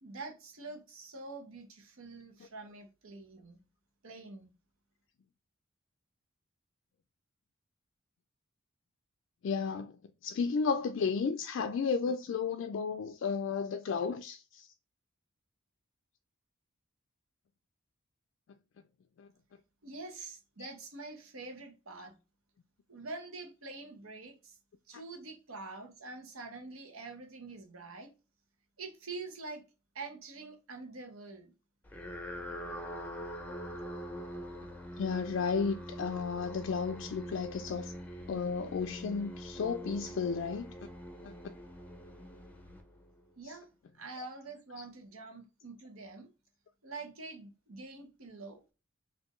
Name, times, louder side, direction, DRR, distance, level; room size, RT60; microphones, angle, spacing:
voice 1, 0.0-3.6 4.0-4.5 19.8-22.2 22.9-24.6 24.9-28.1 28.8-29.6 29.9-31.5 43.4-43.7 43.9-46.3 46.8-48.6, right 3 dB, 85° right, 1.1 m, -46 dB
voice 2, 9.4-9.9 10.2-14.7 19.2-19.3 35.0-37.9 38.3-40.7 41.2-41.3 44.1-44.2, left 5 dB, 60° left, 0.3 m, -33 dB
sound 1, 31.8-43.3, equal, 10° left, 0.5 m, -44 dB
4.3 x 2.7 x 3.0 m
head